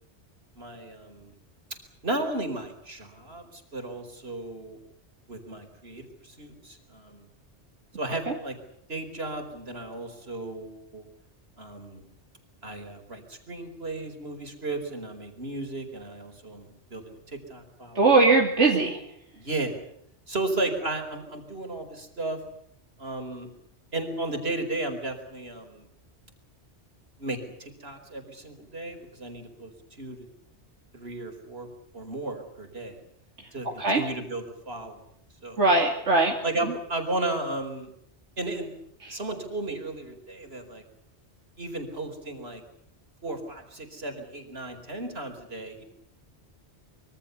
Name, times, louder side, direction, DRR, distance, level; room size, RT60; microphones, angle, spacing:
voice 1, 0.6-1.3 2.0-4.8 5.3-7.3 8.0-8.6 8.9-11.0 11.6-12.1 12.6-18.3 19.4-19.8 20.3-22.4 23.0-23.5 23.9-25.9 27.2-29.7 30.0-30.2 30.9-31.7 31.9-33.0 33.5-35.0 35.4-35.6 36.4-37.9 38.4-38.7 39.1-40.8 41.6-42.6 43.2-45.8, right 2 dB, 60° right, 5 dB, 4.8 m, -34 dB
voice 2, 17.9-19.0 33.8-34.0 35.6-36.4 39.0-39.2, right 3 dB, 80° right, 0 dB, 3.1 m, -20 dB
25.5 x 24.0 x 7.0 m, 0.71 s
omnidirectional pair, 1.2 m